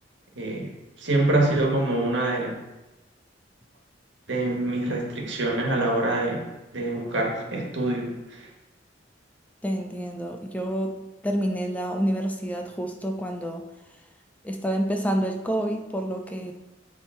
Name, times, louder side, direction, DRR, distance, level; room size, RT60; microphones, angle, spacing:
voice 1, 0.3-2.6 4.3-6.5 6.7-8.5, right 2 dB, 75° right, -1 dB, 1.6 m, -25 dB
voice 2, 9.6-13.6 14.4-16.5, equal, 10° left, 4 dB, 0.5 m, -28 dB
8.9 x 3.6 x 4.5 m, 1.1 s
head